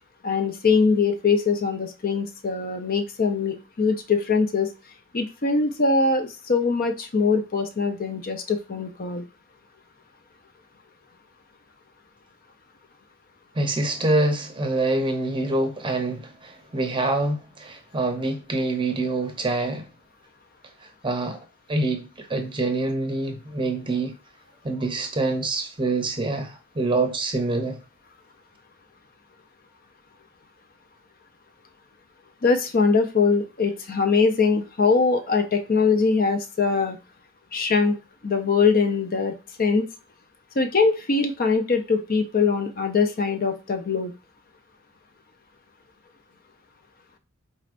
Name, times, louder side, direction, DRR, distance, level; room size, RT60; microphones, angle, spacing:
voice 1, 0.2-4.7 5.1-9.2 32.4-37.0 37.5-38.0 38.2-39.9 40.6-44.1, left 4 dB, 45° left, 0.5 m, -22 dB
voice 2, 13.5-19.9 20.8-21.4 21.7-24.2 24.6-27.8, right 2 dB, 25° right, 0.7 m, -26 dB
4.7 x 4.2 x 2.5 m
head